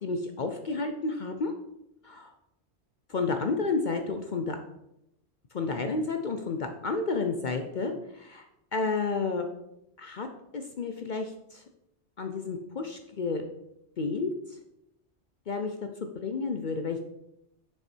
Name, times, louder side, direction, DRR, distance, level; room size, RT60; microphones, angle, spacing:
voice 1, 0.0-1.5 2.0-2.3 3.1-4.6 5.5-9.5 10.0-10.3 10.5-11.6 12.2-13.4 14.0-14.6 15.5-15.7 16.0-17.0, left 4 dB, 50° left, 6 dB, 0.7 m, -31 dB
6.8 x 5.8 x 4.4 m, 0.84 s
omnidirectional pair, 1.2 m